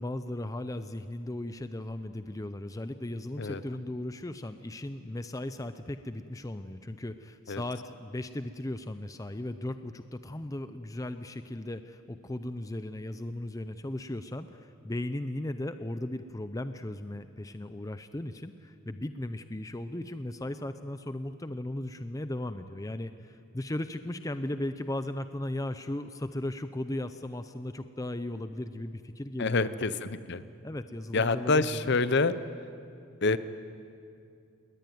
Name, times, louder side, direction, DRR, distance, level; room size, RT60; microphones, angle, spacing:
voice 1, 0.0-29.8 30.6-31.9, left 1 dB, 15° left, 10 dB, 0.5 m, -37 dB
voice 2, 29.4-30.4 31.1-32.3 33.2-33.4, left 3 dB, 50° left, 14 dB, 0.7 m, -26 dB
20.0 x 19.5 x 9.4 m, 2.4 s
head